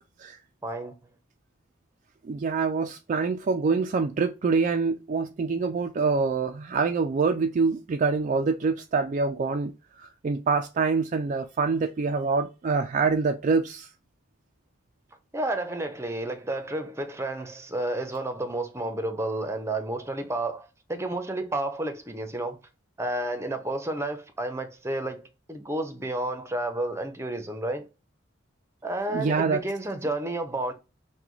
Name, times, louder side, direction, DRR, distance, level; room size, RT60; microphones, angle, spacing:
voice 1, 0.6-0.9 15.3-22.6 23.0-27.8 28.8-30.7, right 1 dB, 15° right, 0.7 m, -31 dB
voice 2, 2.3-9.7 10.0-13.9 29.1-29.6, right 4 dB, 40° right, 0.3 m, -25 dB
5.9 x 2.2 x 3.1 m
head